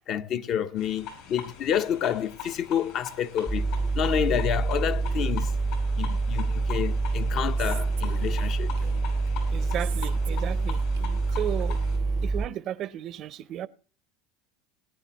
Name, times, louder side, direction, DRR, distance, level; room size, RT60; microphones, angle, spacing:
voice 1, 0.1-3.7 3.9-5.6 6.0-8.7, left 9 dB, 50° left, 0.8 m, -29 dB
sound 1, 0.8-12.0, left 7 dB, 65° left, 5.8 m, -42 dB
sound 2, 3.5-12.5, right 3 dB, 5° left, 0.6 m, -27 dB
Female speech woman speaking, 7.6-9.3 9.8-12.3, right 13 dB, 85° right, 0.8 m, -45 dB
voice 2, 9.5-10.8 11.3-11.8 12.2-13.7, right 11 dB, 50° right, 0.6 m, -34 dB
19.5 x 10.0 x 3.0 m
supercardioid pair, 100°, 0 cm